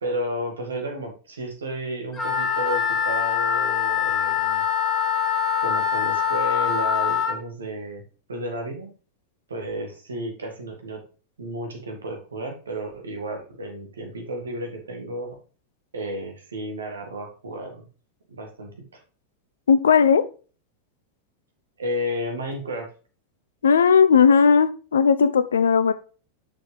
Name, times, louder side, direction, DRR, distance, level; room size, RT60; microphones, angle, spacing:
voice 1, 0.0-4.6 5.6-8.0 8.3-8.9 9.5-11.0 11.4-15.4 15.9-17.8 18.3-19.0 21.8-22.9, equal, 70° right, 3 dB, 2.0 m, -32 dB
Wind instrument woodwind instrument, 2.1-7.4, left 8 dB, 15° left, 1.8 m, -23 dB
voice 2, 19.7-20.2 23.6-25.9, left 6 dB, 65° left, 13 dB, 0.5 m, -17 dB
6.3 x 6.3 x 3.3 m, 0.36 s
figure-of-eight pair, 90°, 0 cm